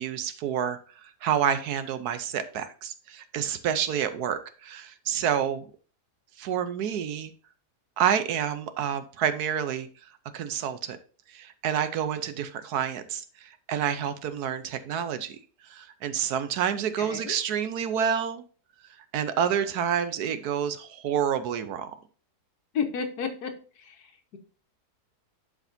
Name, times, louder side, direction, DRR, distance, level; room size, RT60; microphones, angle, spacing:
voice 1, 0.0-5.6 6.4-7.3 8.0-9.9 10.3-11.0 11.3-15.3 15.7-18.4 19.1-21.9, right 8 dB, 70° right, 11 dB, 1.2 m, -28 dB
voice 2, 17.0-17.4 22.7-24.1, left 6 dB, 70° left, 6 dB, 1.5 m, -32 dB
11.5 x 4.9 x 2.6 m, 0.39 s
omnidirectional pair, 1.8 m